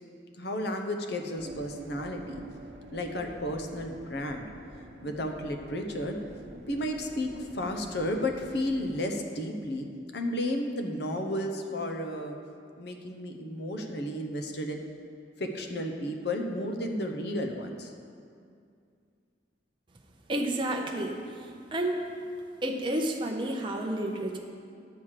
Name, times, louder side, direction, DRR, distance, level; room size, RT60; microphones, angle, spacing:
voice 1, 0.4-2.4 2.9-4.5 5.0-6.2 6.7-9.9 10.1-12.4 12.8-14.8 15.4-17.9, left 1 dB, 60° left, 4 dB, 0.9 m, -33 dB
sound 1, 1.4-9.0, right 2 dB, 65° right, 0.9 m, -47 dB
voice 2, 20.3-21.2 21.7-22.0 22.6-24.4, right 1 dB, 25° right, 1 dB, 0.6 m, -30 dB
10.5 x 4.9 x 7.4 m, 2.4 s
head